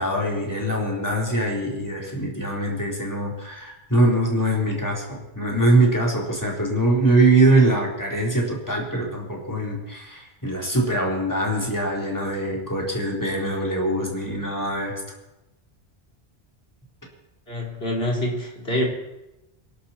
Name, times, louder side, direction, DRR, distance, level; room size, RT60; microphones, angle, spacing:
voice 1, 0.0-15.0, right 2 dB, 15° left, -2 dB, 3.9 m, -23 dB
voice 2, 17.5-18.9, left 1 dB, 65° left, -2 dB, 4.1 m, -26 dB
26.0 x 11.5 x 4.4 m, 0.93 s
omnidirectional pair, 1.1 m